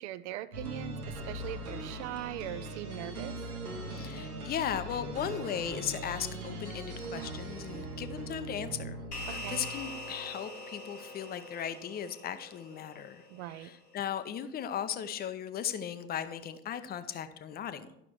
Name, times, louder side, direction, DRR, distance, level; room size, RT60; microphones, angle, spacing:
voice 1, 0.0-3.4 9.3-9.6 13.3-13.7, right 14 dB, 50° right, 16 dB, 0.6 m, -40 dB
sound 1, 0.5-10.3, right 1 dB, 80° right, 1.3 m, -40 dB
voice 2, 3.8-17.9, left 9 dB, 20° left, 11 dB, 0.6 m, -37 dB
sound 2, 9.1-13.8, left 1 dB, 90° left, 1.3 m, -44 dB
11.0 x 5.9 x 4.5 m, 0.84 s
figure-of-eight pair, 80°, 45 cm